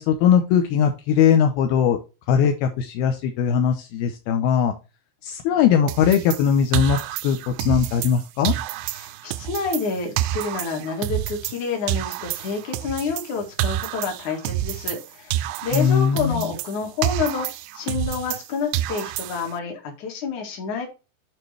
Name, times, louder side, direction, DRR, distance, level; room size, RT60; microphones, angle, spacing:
voice 1, 0.0-2.0 2.3-4.7 5.2-8.6 15.7-16.5, left 8 dB, 80° left, 4 dB, 2.2 m, -20 dB
sound 1, 5.9-8.2 8.5-11.6 11.9-15.1 15.3-18.5 18.7-19.6, right 14 dB, 90° right, 2.3 m, -28 dB
voice 2, 9.0-17.5 17.7-20.9, left 5 dB, 55° left, 2 dB, 2.6 m, -28 dB
9.0 x 4.4 x 3.3 m, 0.29 s
omnidirectional pair, 5.3 m